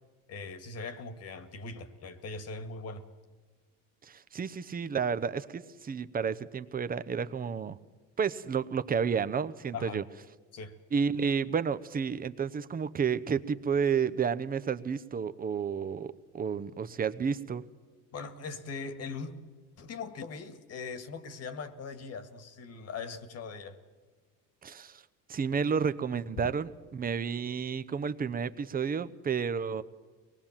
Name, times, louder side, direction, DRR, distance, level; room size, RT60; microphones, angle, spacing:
voice 1, 0.3-3.1 9.7-10.0 10.5-10.7 18.1-19.4 19.8-23.8, left 4 dB, 45° left, 11 dB, 2.0 m, -40 dB
voice 2, 4.1-7.8 8.2-10.0 10.9-17.7 24.6-25.0 25.3-29.8, right 6 dB, 25° right, 13 dB, 0.9 m, -31 dB
23.5 x 20.0 x 7.4 m, 1.4 s
supercardioid pair, 105°, 35 cm